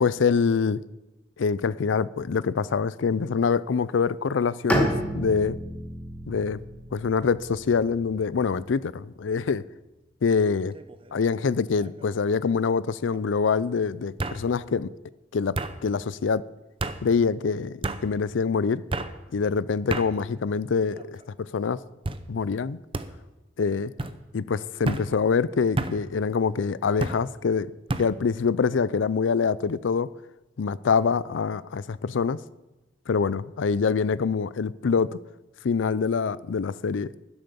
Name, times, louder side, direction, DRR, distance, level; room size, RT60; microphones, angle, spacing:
voice 1, 0.0-0.8 1.4-5.6 6.3-6.6 6.9-9.6 10.2-10.7 11.1-14.9 15.3-15.6 15.8-16.4 17.0-18.8 19.3-21.8 22.3-22.8 23.6-23.9 24.3-27.7 28.0-30.1 30.6-32.4 33.1-35.2 35.6-37.1, left 5 dB, 85° left, 0.4 m, -25 dB
Bowed string instrument, 4.7-8.6, equal, 10° left, 1.9 m, -30 dB
sound 1, 10.7-11.1 11.5-12.1 13.1-13.2 14.2-14.4 15.5-15.7 16.8-17.0 17.8-18.0 18.9-19.1 19.9-20.1 20.8-21.3 22.0-22.2 22.9-23.1 24.0-24.2 24.8-25.1 25.8-26.0 27.0-27.2 27.9-28.1, right 2 dB, 30° right, 0.7 m, -30 dB
11.5 x 10.5 x 6.9 m
head